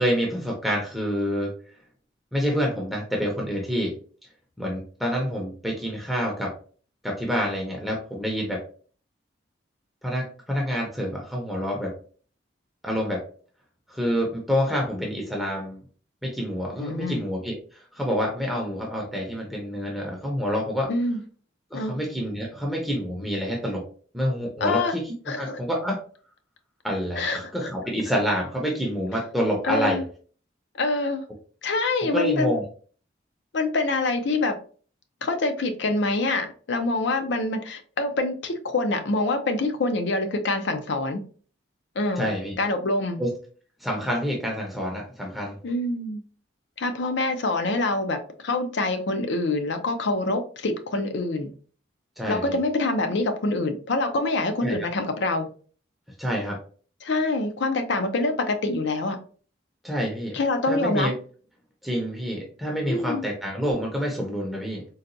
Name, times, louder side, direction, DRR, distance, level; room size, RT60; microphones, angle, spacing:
voice 1, 0.0-1.5 2.3-3.9 4.6-6.5 7.0-8.6 10.0-11.9 12.8-13.2 13.9-15.8 16.2-20.9 21.7-23.8 24.1-25.0 25.4-26.0 26.8-30.0 32.1-32.6 42.2-42.5 43.2-43.3 43.8-45.6 52.2-52.6 54.6-54.9 56.2-56.6 59.8-60.4 60.7-61.1 61.8-64.9, equal, ahead, 0.6 m, -27 dB
voice 2, 16.8-17.2 20.9-21.2 21.7-21.9 24.6-25.0 25.3-25.6 27.2-27.7 29.6-30.0 30.8-31.2 31.6-32.5 33.5-34.6 35.2-41.2 42.0-42.3 42.6-43.2 45.6-46.2 46.8-51.5 52.3-55.5 57.0-59.2 60.3-61.1 62.9-63.2, left 2 dB, 70° left, 0.5 m, -25 dB
3.9 x 2.2 x 2.5 m
head